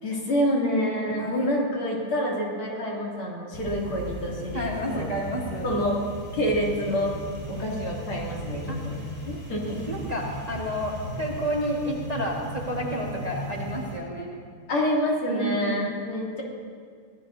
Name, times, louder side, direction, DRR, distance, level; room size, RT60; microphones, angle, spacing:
voice 1, 0.0-5.1 5.6-6.0 6.3-7.2 7.5-9.8 14.7-16.4, equal, 75° left, -4 dB, 3.7 m, -27 dB
voice 2, 1.2-1.5 4.5-5.7 8.7-8.8 9.9-14.3 15.3-16.0, equal, 20° right, -4 dB, 1.7 m, -30 dB
sound 1, 3.5-14.0, equal, 30° left, 3.7 m, -37 dB
22.5 x 17.5 x 2.8 m, 2.1 s
omnidirectional pair, 2.4 m